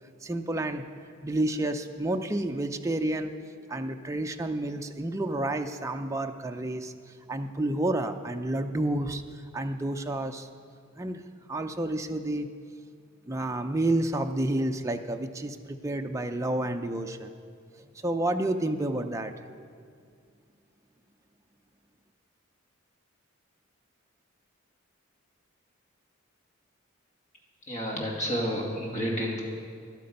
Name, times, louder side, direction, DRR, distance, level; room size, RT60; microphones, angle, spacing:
voice 1, 0.2-0.8 1.2-3.3 3.7-10.5 11.0-11.2 11.5-12.5 13.3-17.3 17.8-19.3, right 1 dB, 15° right, 5 dB, 0.5 m, -30 dB
voice 2, 27.7-29.4, equal, 35° left, -2 dB, 2.4 m, -30 dB
13.0 x 11.5 x 5.3 m, 2.2 s
head